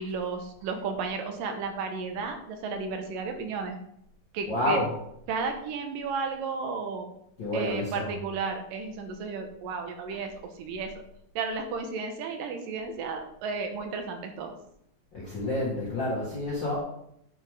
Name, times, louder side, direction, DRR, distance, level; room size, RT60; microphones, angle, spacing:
voice 1, 0.0-3.8 4.3-4.8 5.3-7.1 7.5-10.3 10.6-10.9 11.4-14.5, right 4 dB, 75° right, 5 dB, 2.7 m, -33 dB
voice 2, 4.5-4.9 7.4-8.1 10.1-10.2 15.1-16.8, left 1 dB, 40° left, -6 dB, 1.8 m, -29 dB
8.8 x 6.4 x 3.6 m, 0.72 s
omnidirectional pair, 4.2 m